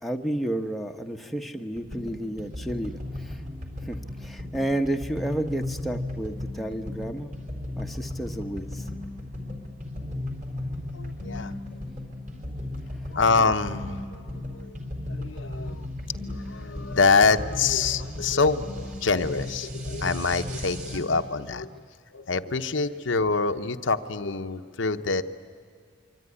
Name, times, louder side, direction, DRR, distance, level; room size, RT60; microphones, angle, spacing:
voice 1, 0.0-3.4 3.8-7.4 7.7-8.9, right 1 dB, ahead, 3 dB, 0.9 m, -31 dB
sound 1, 1.7-21.0, left 1 dB, 40° right, 4.2 m, -36 dB
voice 2, 10.9-11.8 13.1-14.2 14.5-14.8 15.1-15.9 16.3-21.8 22.1-25.2, left 4 dB, 65° left, 8 dB, 0.8 m, -25 dB
24.5 x 24.5 x 9.8 m, 2.1 s
head